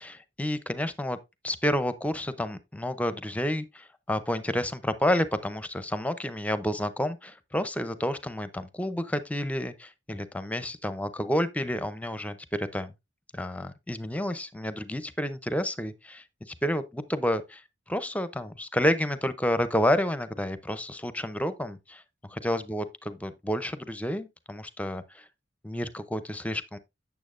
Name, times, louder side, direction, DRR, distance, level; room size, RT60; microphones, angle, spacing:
voice 1, 0.0-1.2 1.4-12.9 13.3-16.2 16.6-17.6 17.9-22.0 22.3-25.3 25.6-26.8, left 1 dB, 10° left, 0.6 m, -30 dB
8.5 x 7.0 x 2.5 m
head